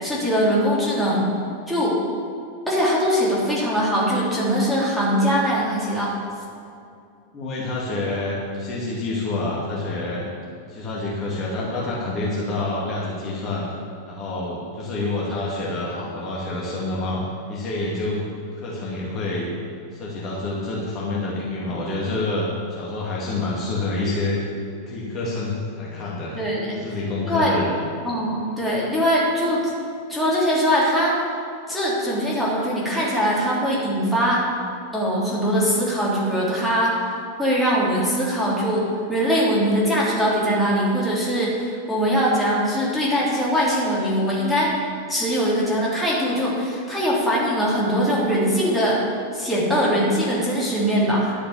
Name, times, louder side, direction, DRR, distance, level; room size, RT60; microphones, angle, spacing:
voice 1, 0.0-1.3 1.7-1.9 2.7-6.1 26.3-26.8 27.2-27.5 28.0-29.6 30.1-31.1 31.7-34.4 34.9-37.1 37.4-38.8 39.1-44.8 45.1-49.0 49.3-51.3, equal, 5° left, -7 dB, 3.2 m, -21 dB
voice 2, 7.3-10.2 10.7-13.7 14.1-17.2 17.5-18.3 18.5-19.5 19.9-24.5 24.9-26.4 26.7-27.8, left 2 dB, 30° left, -6 dB, 2.3 m, -27 dB
11.0 x 6.7 x 7.2 m, 2.5 s
figure-of-eight pair, 90°, 0 cm